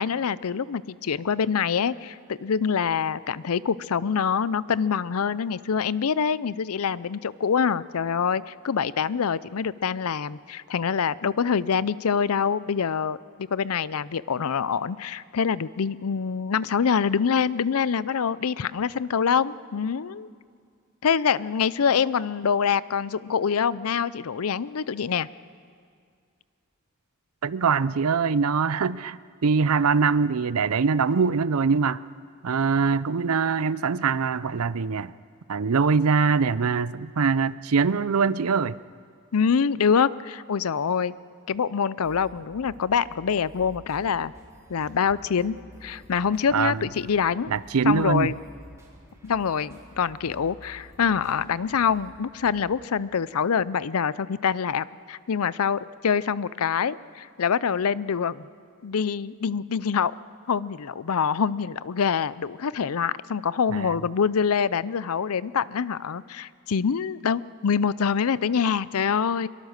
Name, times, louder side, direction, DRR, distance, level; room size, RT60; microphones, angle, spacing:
voice 1, 0.0-13.2 13.5-20.3 21.0-25.3 39.3-41.2 41.5-44.3 44.7-45.6 45.8-47.5 47.8-48.3 49.2-58.5 58.8-60.1 60.5-69.5, left 6 dB, 75° left, 19 dB, 0.5 m, -25 dB
voice 2, 27.4-32.0 32.4-35.1 35.5-38.8 46.5-46.8 47.5-48.3 63.7-63.9, right 5 dB, 75° right, 18 dB, 0.6 m, -23 dB
sound 1, 42.0-52.7, equal, 15° right, 3.4 m, -50 dB
24.0 x 22.5 x 6.6 m, 2.2 s
head